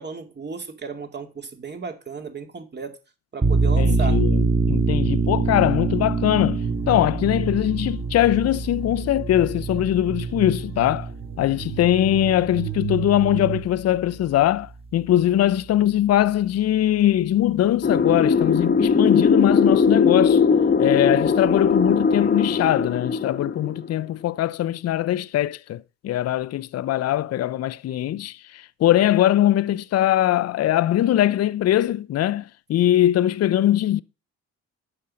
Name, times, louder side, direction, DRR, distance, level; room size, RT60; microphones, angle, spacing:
voice 1, 0.0-2.9 3.3-4.2, right 5 dB, 35° right, 2.4 m, -34 dB
sound 1, 3.4-14.7, right 4 dB, 20° right, 1.2 m, -25 dB
voice 2, 3.8-11.1 11.4-20.4 20.8-34.0, left 12 dB, 55° left, 0.5 m, -21 dB
sound 2, 6.6-13.6, right 10 dB, 55° right, 4.5 m, -34 dB
sound 3, 17.8-24.0, left 5 dB, 35° left, 1.1 m, -19 dB
9.8 x 5.4 x 7.6 m
cardioid pair, 90°, 30 cm